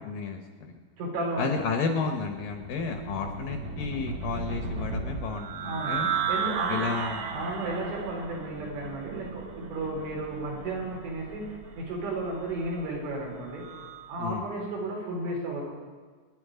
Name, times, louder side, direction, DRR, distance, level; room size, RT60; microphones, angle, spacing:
voice 1, 0.0-0.8 1.4-6.1 6.7-7.2 14.2-14.5, left 5 dB, 70° left, 4 dB, 2.4 m, -32 dB
voice 2, 1.0-1.5 3.1-3.3 5.6-6.9 7.3-11.4 11.8-13.6 14.1-15.6, right 2 dB, 85° right, -2 dB, 6.6 m, -33 dB
sound 1, 2.2-14.1, right 5 dB, 60° right, 2.4 m, -35 dB
27.0 x 10.5 x 5.0 m, 1.5 s
omnidirectional pair, 5.1 m